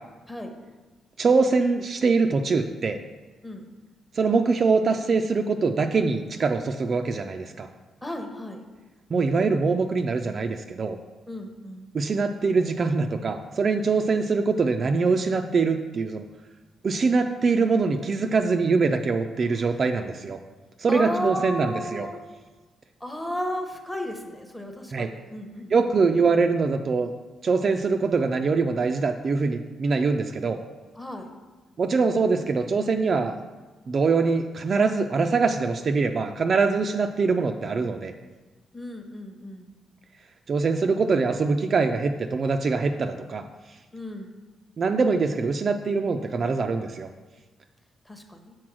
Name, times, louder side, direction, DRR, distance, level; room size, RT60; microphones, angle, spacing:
voice 1, 1.2-3.0 4.1-7.7 9.1-11.0 11.9-16.2 16.8-20.4 20.8-22.1 24.9-25.1 25.7-27.1 27.4-30.6 31.8-33.4 33.9-38.1 40.5-43.4 44.8-47.1, right 4 dB, 35° right, 5 dB, 0.3 m, -23 dB
voice 2, 8.0-8.7 11.3-11.9 19.5-19.9 20.9-22.2 23.0-25.9 31.0-31.3 36.8-36.9 38.7-39.7 43.9-44.3 48.0-48.5, equal, 5° left, 4 dB, 0.8 m, -34 dB
6.1 x 4.2 x 6.0 m, 1.2 s
cardioid pair, 145°, 0 cm